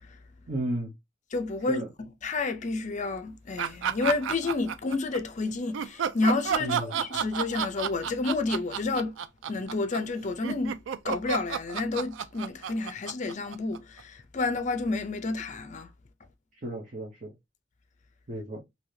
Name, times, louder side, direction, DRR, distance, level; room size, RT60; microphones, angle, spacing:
voice 1, 0.5-0.9 1.6-1.9 6.6-6.9 16.6-17.3 18.3-18.6, right 1 dB, 45° right, 0.8 m, -33 dB
voice 2, 1.3-9.1 9.5-10.8 11.0-15.9, left 3 dB, 40° left, 0.5 m, -30 dB
sound 1, 3.6-5.2 5.7-14.0, right 8 dB, 80° right, 0.4 m, -31 dB
3.3 x 2.7 x 2.7 m
head